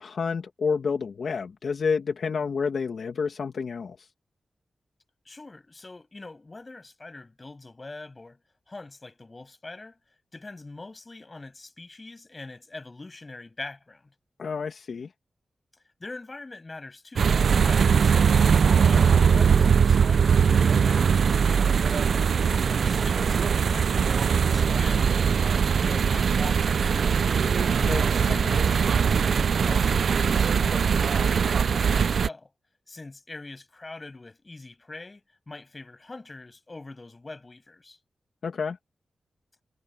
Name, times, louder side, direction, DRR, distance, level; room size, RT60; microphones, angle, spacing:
voice 1, 0.0-4.1 14.4-15.1 27.8-28.9 38.4-38.8, left 5 dB, 70° left, 2.3 m, -30 dB
voice 2, 5.2-8.4 8.7-10.0 10.3-14.1 16.0-18.4 18.8-22.1 22.4-25.4 25.7-27.3 29.7-32.5 32.9-38.0, left 2 dB, 25° left, 7.6 m, -43 dB
sound 1, 17.2-32.3, right 6 dB, 70° right, 0.4 m, -21 dB
wide cardioid pair, 150°, 0 cm